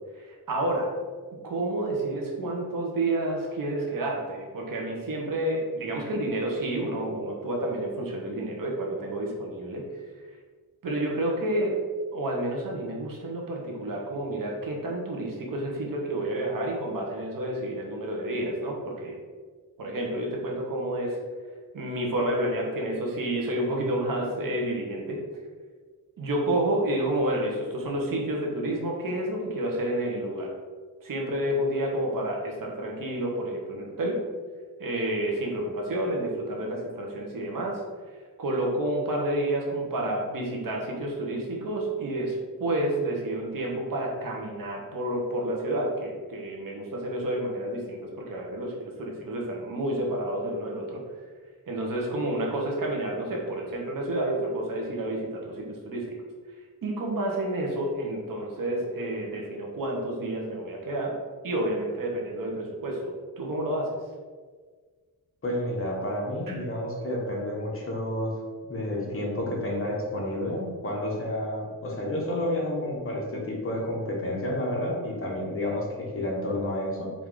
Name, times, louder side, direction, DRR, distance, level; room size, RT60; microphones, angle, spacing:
voice 1, 0.1-0.9 1.4-9.8 10.2-10.3 10.8-11.8 12.1-19.2 19.8-21.2 21.7-25.2 26.2-30.5 31.0-34.2 34.8-37.8 38.4-51.0 51.7-56.1 56.8-61.1 61.4-63.9 66.5-66.6, right 1 dB, 60° right, -1 dB, 1.0 m, -30 dB
voice 2, 65.4-68.3 68.7-77.1, left 1 dB, 35° left, -2 dB, 1.0 m, -30 dB
4.7 x 2.7 x 3.7 m, 1.5 s
wide cardioid pair, 125°, 37 cm